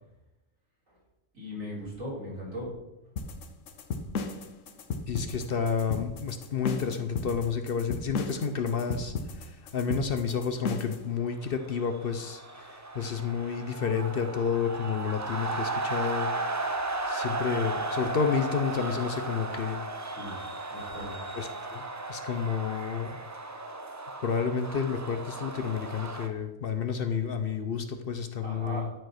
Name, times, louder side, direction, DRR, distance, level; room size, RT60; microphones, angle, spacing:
voice 1, 1.3-2.7 20.0-20.4 20.7-21.2 28.4-28.9, equal, 90° right, -5 dB, 4.2 m, -38 dB
sound 1, 3.2-11.0, left 4 dB, 70° left, 1.2 m, -35 dB
voice 2, 5.1-16.3 17.1-19.8 21.4-21.8 22.1-23.2 24.2-28.9, left 6 dB, 55° left, 8 dB, 0.8 m, -30 dB
sound 2, 11.5-26.3, right 2 dB, 20° right, 0.4 m, -35 dB
11.0 x 5.2 x 5.8 m, 0.96 s
omnidirectional pair, 1.4 m